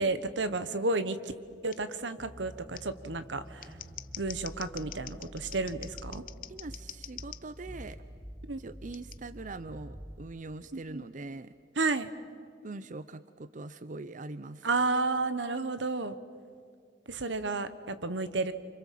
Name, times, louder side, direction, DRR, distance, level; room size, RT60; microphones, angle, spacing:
voice 1, 0.0-1.3 1.6-3.7 4.2-6.2 8.5-8.6 10.7-11.0 11.8-12.1 14.6-16.2 17.1-18.5, right 3 dB, 80° right, 12 dB, 1.3 m, -31 dB
Scissors, 1.7-1.8 2.7-2.8 3.5-7.4 8.9-9.2, left 13 dB, 50° left, 0.7 m, -45 dB
sound 1, 2.2-10.2, equal, 20° right, 1.5 m, -47 dB
voice 2, 6.5-8.0 8.6-11.5 12.6-14.7, right 2 dB, 45° right, 13 dB, 0.6 m, -42 dB
29.0 x 26.0 x 7.6 m, 2.3 s
head